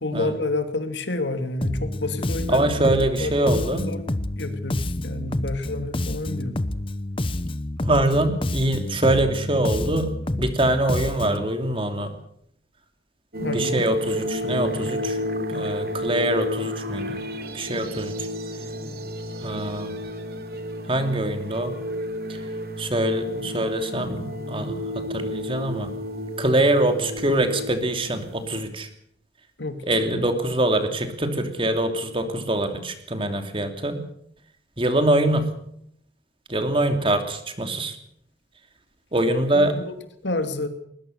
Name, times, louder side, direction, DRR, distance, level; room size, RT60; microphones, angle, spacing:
voice 1, 0.0-4.0 4.4-6.6 13.4-13.8 29.6-30.3 39.5-39.9 40.2-40.7, left 2 dB, 85° left, 8 dB, 2.5 m, -29 dB
Bass guitar, 1.6-11.5, left 1 dB, 30° left, 0.9 m, -29 dB
voice 2, 2.5-3.8 7.8-10.1 10.4-12.1 13.4-15.2 15.5-17.2 17.5-18.1 19.4-19.9 20.9-21.7 22.8-25.9 26.4-28.9 29.9-34.0 34.8-35.5 36.5-38.0 39.1-39.8, right 1 dB, 30° right, 7 dB, 2.9 m, -24 dB
sound 1, 13.3-28.6, left 1 dB, 55° right, 3.4 m, -31 dB
20.5 x 20.5 x 6.6 m, 0.69 s
head